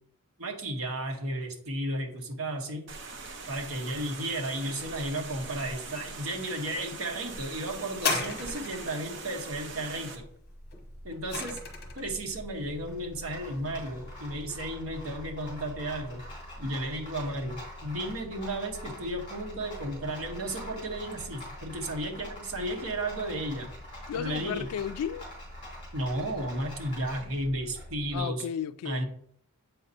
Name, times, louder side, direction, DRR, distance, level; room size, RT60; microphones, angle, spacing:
voice 1, 0.4-2.9 3.5-10.2 11.0-11.6 11.9-16.2 16.6-23.7 24.1-24.7 25.9-28.5 28.8-29.0, right 1 dB, 75° right, 1.3 m, -33 dB
sound 1, 2.9-10.2, right 3 dB, 55° right, 0.9 m, -42 dB
sound 2, 7.9-9.0 10.7-12.1 12.9-13.0, left 4 dB, 45° left, 0.9 m, -33 dB
Rattle, 10.0-28.2, left 1 dB, 25° left, 2.5 m, -44 dB
voice 2, 24.1-25.3 28.1-29.0, left 8 dB, 90° left, 0.3 m, -34 dB
7.6 x 5.2 x 2.8 m
head